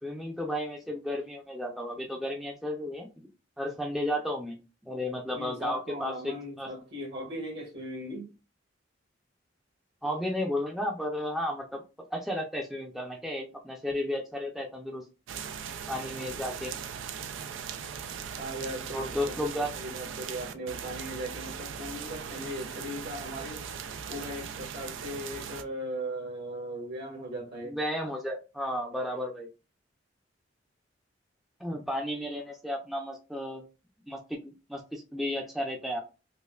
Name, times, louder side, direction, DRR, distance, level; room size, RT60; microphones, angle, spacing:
voice 1, 0.0-3.1 3.6-4.6 4.8-6.7 10.0-11.8 12.1-15.0 15.9-16.7 18.9-19.7 27.6-29.5 31.6-33.6 34.1-36.0, left 1 dB, ahead, 0.5 m, -33 dB
voice 2, 5.3-8.3 18.4-23.6 24.1-27.8, equal, 60° right, 1.6 m, -38 dB
sound 1, 15.3-25.6, right 7 dB, 85° right, 0.4 m, -39 dB
5.3 x 2.2 x 2.3 m
head